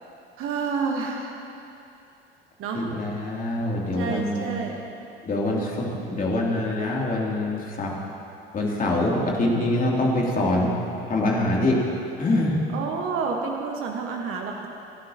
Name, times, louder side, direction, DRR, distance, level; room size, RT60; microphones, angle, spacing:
voice 1, 0.4-1.4 2.6-2.9 4.0-4.8 12.7-14.7, right 5 dB, 40° right, 2 dB, 1.3 m, -29 dB
voice 2, 2.7-4.5 5.2-7.9 8.5-10.7 11.1-11.8 12.2-12.6, left 1 dB, 25° left, -3 dB, 2.9 m, -24 dB
29.0 x 11.0 x 2.9 m, 2.7 s
figure-of-eight pair, 65°, 32 cm